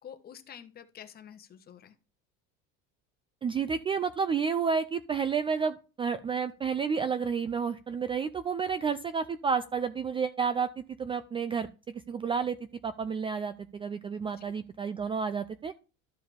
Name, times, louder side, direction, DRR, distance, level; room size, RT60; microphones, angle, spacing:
voice 1, 0.0-1.9 14.2-14.5, left 9 dB, 30° left, 9 dB, 1.1 m, -49 dB
voice 2, 3.4-12.6 12.8-15.7, right 6 dB, 20° right, 13 dB, 0.3 m, -31 dB
13.0 x 4.7 x 3.4 m, 0.34 s
cardioid pair, 140°, 30 cm